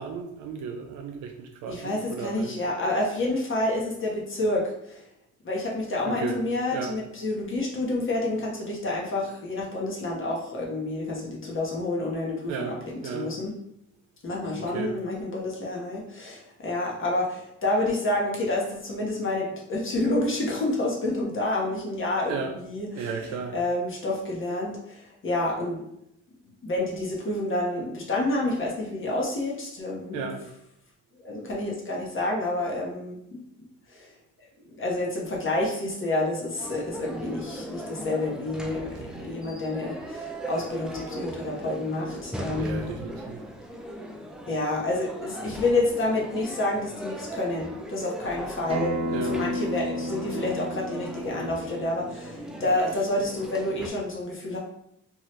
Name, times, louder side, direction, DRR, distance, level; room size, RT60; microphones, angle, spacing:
voice 1, 0.0-2.5 6.0-6.4 6.7-6.9 12.5-13.3 14.5-14.9 22.3-22.6 22.9-23.6 30.1-30.4 38.9-39.3 42.6-43.4 49.1-49.4, right 6 dB, 85° right, 3 dB, 0.5 m, -34 dB
voice 2, 1.7-5.0 5.4-13.5 14.2-25.8 26.6-30.2 31.1-33.4 33.9-34.1 34.7-42.8 44.5-54.6, left 2 dB, 45° left, -2 dB, 0.8 m, -29 dB
sound 1, 36.6-53.9, right 1 dB, ahead, 0.3 m, -39 dB
Acoustic guitar, 48.7-53.9, equal, 20° right, 0.9 m, -33 dB
2.8 x 2.3 x 3.1 m, 0.78 s
cardioid pair, 90°, 30 cm